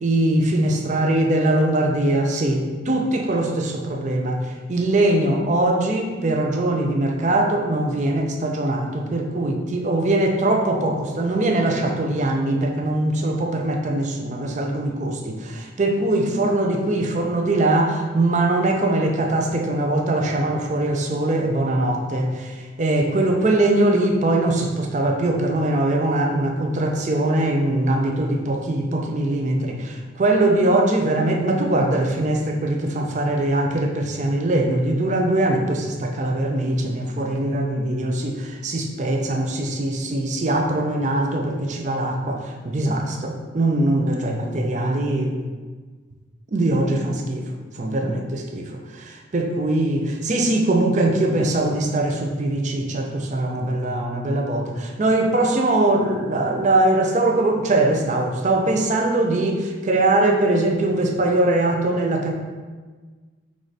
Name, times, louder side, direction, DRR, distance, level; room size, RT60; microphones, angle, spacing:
voice 1, 0.0-45.4 46.5-62.3, right 2 dB, 40° right, 2 dB, 0.5 m, -22 dB
4.7 x 2.5 x 4.0 m, 1.4 s
head